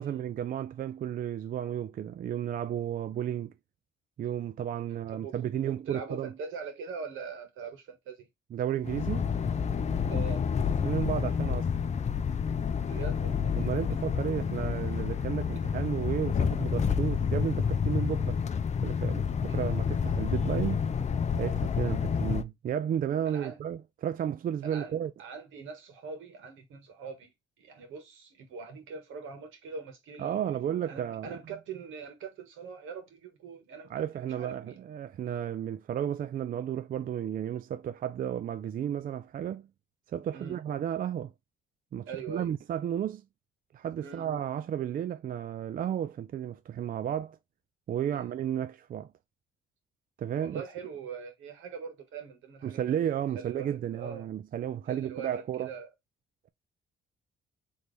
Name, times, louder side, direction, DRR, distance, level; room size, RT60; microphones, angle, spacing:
voice 1, 0.0-3.5 4.2-6.3 8.5-9.3 10.0-10.1 10.8-11.7 13.6-18.4 18.8-20.9 21.4-25.1 30.2-31.3 33.9-39.7 40.1-41.3 41.9-43.2 43.7-47.4 47.9-49.1 50.2-50.6 52.6-55.7, right 10 dB, 45° right, 0.4 m, -33 dB
voice 2, 4.9-5.3 5.6-8.3 10.1-10.4 12.8-13.5 19.5-19.7 23.2-23.6 24.6-34.8 40.3-40.6 42.1-42.5 44.0-44.3 48.1-48.3 50.4-54.3 54.9-55.9, right 5 dB, 80° right, 1.7 m, -43 dB
sound 1, 8.8-22.4, left 6 dB, 35° left, 0.6 m, -29 dB
4.2 x 3.3 x 3.3 m
cardioid pair, 90°, 20 cm